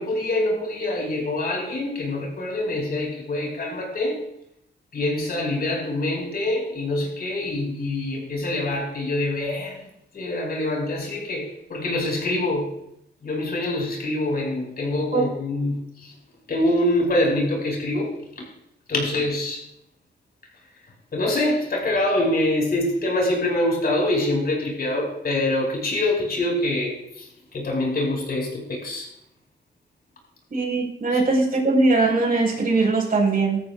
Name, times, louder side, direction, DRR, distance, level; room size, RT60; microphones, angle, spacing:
voice 1, 0.0-4.2 4.9-9.8 10.1-12.7 13.2-16.1 16.5-18.1 18.4-18.5 18.9-19.6 21.1-29.1 31.1-31.2, left 1 dB, 60° left, -1 dB, 5.3 m, -25 dB
voice 2, 30.5-33.6, right 3 dB, 55° right, -1 dB, 4.8 m, -20 dB
18.5 x 13.5 x 2.4 m, 0.77 s
cardioid pair, 75°, 18 cm